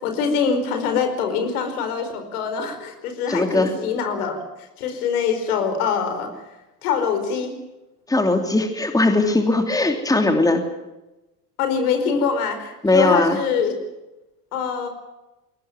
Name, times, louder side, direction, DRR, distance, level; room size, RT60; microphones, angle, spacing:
voice 1, 0.0-4.4 4.8-6.3 6.8-7.5 11.6-13.7 14.5-14.9, left 6 dB, 65° left, 7 dB, 4.9 m, -24 dB
voice 2, 3.3-3.7 8.1-10.6 12.8-13.4, left 2 dB, 5° left, 5 dB, 2.9 m, -19 dB
22.5 x 18.5 x 9.1 m, 1.0 s
figure-of-eight pair, 75°, 47 cm